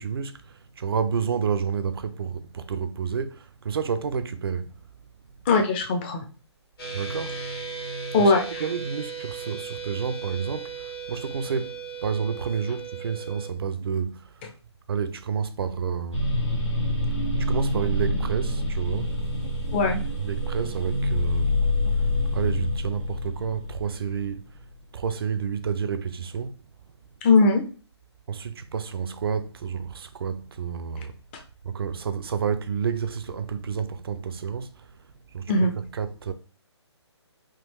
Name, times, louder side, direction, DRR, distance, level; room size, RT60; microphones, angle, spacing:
voice 1, 0.0-4.8 6.9-7.4 8.2-8.3 8.6-14.4 14.9-16.4 17.1-19.1 20.2-21.6 22.0-24.7 24.9-26.6 28.3-31.2 31.6-35.0 35.3-36.3, right 6 dB, 55° right, 0.4 m, -30 dB
voice 2, 5.5-6.2 8.1-8.6 19.7-20.0 27.2-27.6 35.5-35.7, left 3 dB, 25° left, 0.5 m, -20 dB
sound 1, 6.8-13.5, right 5 dB, 55° left, 1.5 m, -36 dB
sound 2, 16.1-24.2, left 1 dB, 90° left, 1.4 m, -26 dB
3.6 x 2.4 x 2.9 m
figure-of-eight pair, 145°, 15 cm